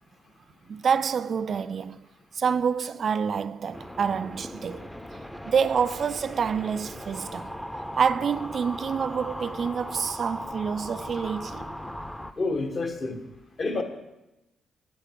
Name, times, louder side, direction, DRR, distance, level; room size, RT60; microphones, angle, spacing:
voice 1, 0.7-2.0 2.3-4.9 5.4-7.5 8.0-11.7, right 6 dB, 50° right, 0.4 m, -27 dB
sound 1, 3.7-12.3, equal, 5° left, 0.5 m, -38 dB
voice 2, 12.4-13.2 13.6-13.8, left 3 dB, 40° left, 1.4 m, -28 dB
9.9 x 9.1 x 4.7 m
cardioid pair, 90°, 0 cm